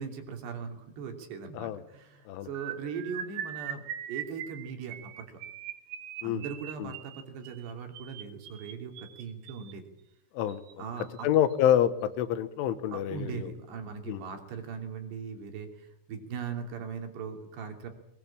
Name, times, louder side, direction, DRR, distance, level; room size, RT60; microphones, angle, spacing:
voice 1, 0.0-3.8 4.1-5.2 6.2-9.8 10.8-11.3 12.9-15.7 16.1-17.9, right 6 dB, 60° right, 5 dB, 4.9 m, -39 dB
sound 1, 2.5-9.7 10.5-10.7 11.0-11.2 11.5-11.7, right 10 dB, 80° right, 3.8 m, -41 dB
voice 2, 11.2-13.5 14.1-14.2, left 10 dB, 85° left, 13 dB, 3.6 m, -27 dB
23.0 x 20.0 x 8.8 m, 0.84 s
omnidirectional pair, 5.5 m